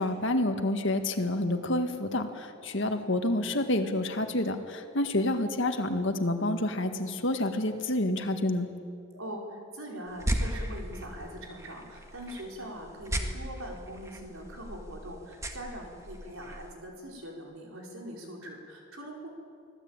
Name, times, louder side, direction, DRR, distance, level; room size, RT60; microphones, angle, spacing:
voice 1, 0.0-8.7, left 1 dB, 65° left, 6 dB, 1.9 m, -28 dB
voice 2, 9.1-19.3, equal, 90° right, 0 dB, 4.8 m, -42 dB
sound 1, 10.1-16.7, equal, 15° right, 1.7 m, -37 dB
25.0 x 16.5 x 8.9 m, 2.4 s
head